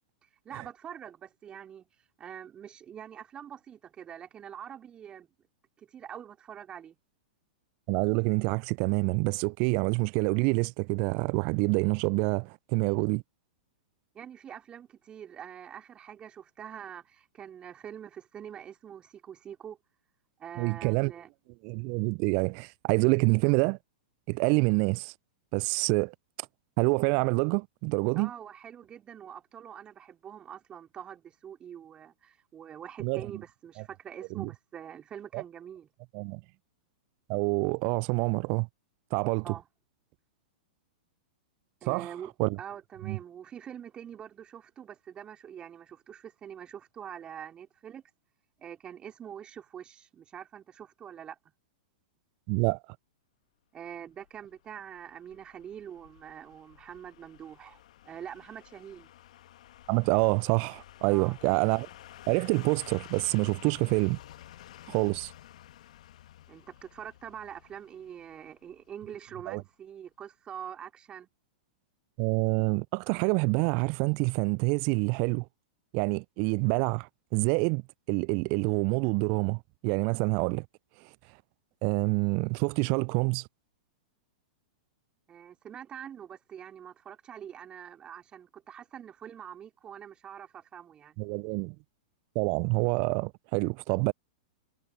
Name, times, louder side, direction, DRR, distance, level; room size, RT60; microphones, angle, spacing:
voice 1, 0.5-1.9 2.2-5.3 5.8-7.0 14.1-19.8 20.4-21.3 28.2-35.9 39.4-39.7 41.8-48.0 48.6-51.4 53.7-59.1 61.1-61.4 66.5-71.3 85.3-91.2, right 9 dB, 25° right, 3.4 m, -45 dB
voice 2, 7.9-13.2 20.6-21.1 21.6-23.8 24.3-25.1 25.5-26.1 26.8-28.3 33.0-33.3 34.4-34.5 35.3-35.4 36.1-36.4 37.3-38.7 39.1-39.5 41.9-42.1 42.4-42.6 43.0-43.2 52.5-52.8 59.9-61.9 62.3-64.2 64.9-65.3 69.5-69.6 72.2-75.5 75.9-77.8 78.1-80.7 81.8-83.5 91.2-91.8 92.4-94.1, right 36 dB, 40° right, 0.4 m, -27 dB
sound 1, 54.2-69.2 69.5-69.6, left 13 dB, 60° left, 1.6 m, -52 dB
figure-of-eight pair, 105°, 4 cm